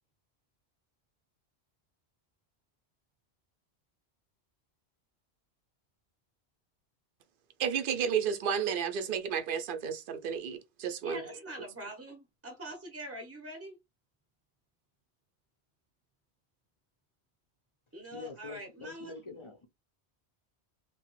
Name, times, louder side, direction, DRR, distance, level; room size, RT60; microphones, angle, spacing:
voice 1, 7.6-11.2, right 7 dB, 60° right, 0.7 m, -32 dB
voice 2, 11.0-13.8 17.9-19.1, right 1 dB, 15° right, 0.7 m, -43 dB
voice 3, 18.1-19.7, left 3 dB, 35° left, 0.5 m, -45 dB
2.9 x 2.2 x 2.9 m
omnidirectional pair, 1.1 m